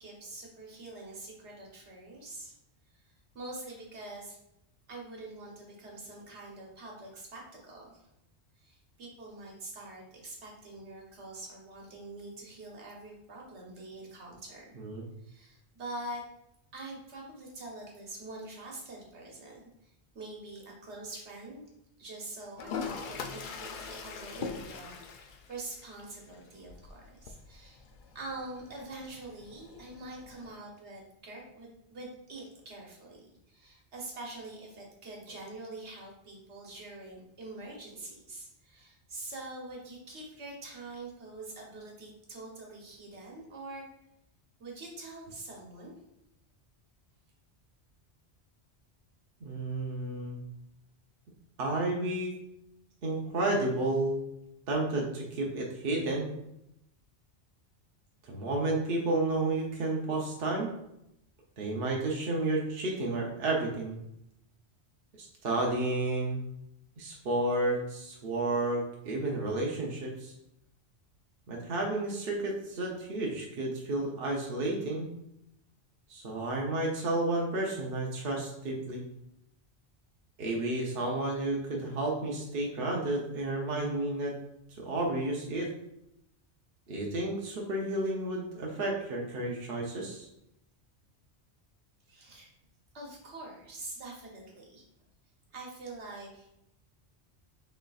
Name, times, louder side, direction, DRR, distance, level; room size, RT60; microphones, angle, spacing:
voice 1, 0.0-2.5 2.9-4.4 4.9-8.1 8.6-14.7 15.2-16.2 16.7-21.6 22.0-27.8 28.1-43.9 44.6-45.9 92.1-92.5 92.9-94.8 95.5-96.5, right 2 dB, 80° right, -1 dB, 1.4 m, -45 dB
Toilet flush, 22.6-30.6, left 5 dB, 60° left, 0.6 m, -43 dB
voice 2, 49.4-50.4 51.6-52.3 53.0-54.2 54.7-56.3 58.3-60.7 61.6-64.0 65.2-66.4 67.0-70.3 71.5-75.1 76.1-79.0 80.4-84.3 84.8-85.7 86.9-90.3, right 2 dB, 60° right, -1 dB, 0.9 m, -31 dB
6.5 x 3.2 x 2.3 m, 0.82 s
omnidirectional pair, 1.1 m